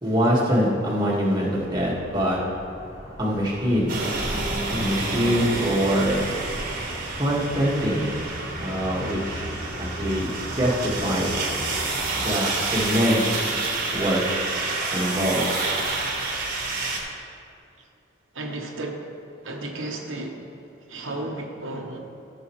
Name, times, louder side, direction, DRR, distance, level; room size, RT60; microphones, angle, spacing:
voice 1, 0.0-2.4 3.2-3.9 4.7-6.3 7.1-8.1 8.6-9.5 9.8-10.3 10.6-11.3 12.1-13.3 13.9-14.2 14.9-15.4, equal, 20° right, -5 dB, 1.8 m, -24 dB
sound 1, 1.4-12.0, equal, 35° left, 1.8 m, -39 dB
sound 2, 3.9-17.0, right 3 dB, 45° right, 1.4 m, -29 dB
voice 2, 18.3-22.1, right 2 dB, 75° right, 1 dB, 1.0 m, -34 dB
15.0 x 6.8 x 3.1 m, 2.6 s
head